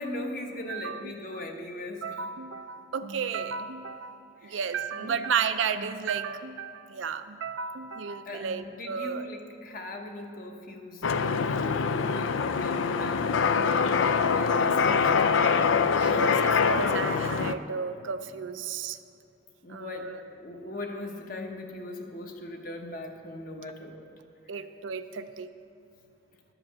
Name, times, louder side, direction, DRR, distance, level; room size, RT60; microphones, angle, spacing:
voice 1, 0.0-2.3 4.4-4.6 4.9-5.2 8.2-13.8 14.2-15.7 19.6-24.1 24.5-24.7, left 1 dB, 45° left, 2 dB, 1.0 m, -40 dB
voice 2, 0.7-1.4 2.0-9.3 16.0-19.0 19.7-20.2 24.5-25.5, right 6 dB, 80° right, 10 dB, 0.5 m, -33 dB
sound 1, 11.0-17.5, left 5 dB, 85° left, 0.4 m, -24 dB
12.0 x 5.1 x 7.2 m, 2.7 s
head